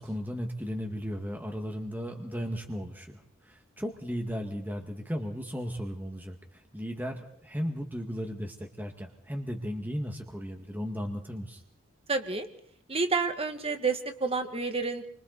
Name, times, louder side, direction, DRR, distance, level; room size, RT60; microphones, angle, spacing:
voice 1, 0.0-11.6, equal, 10° right, 2 dB, 1.9 m, -36 dB
voice 2, 12.1-12.5 12.9-15.1, right 4 dB, 30° right, 6 dB, 2.1 m, -29 dB
29.5 x 25.0 x 4.1 m, 0.65 s
head